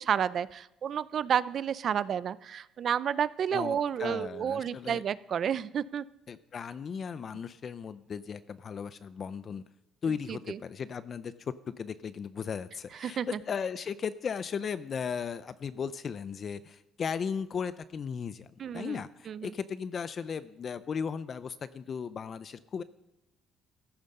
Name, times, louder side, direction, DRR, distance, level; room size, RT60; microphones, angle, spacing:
voice 1, 0.0-6.0 10.3-10.6 13.0-13.3 18.6-19.0 19.3-19.5, right 8 dB, 45° right, 17 dB, 0.5 m, -31 dB
voice 2, 3.5-5.0 6.3-9.6 10.0-18.5 18.7-22.8, left 6 dB, 35° left, 14 dB, 0.5 m, -36 dB
14.5 x 13.5 x 5.4 m, 0.90 s
cardioid pair, 140°, 0 cm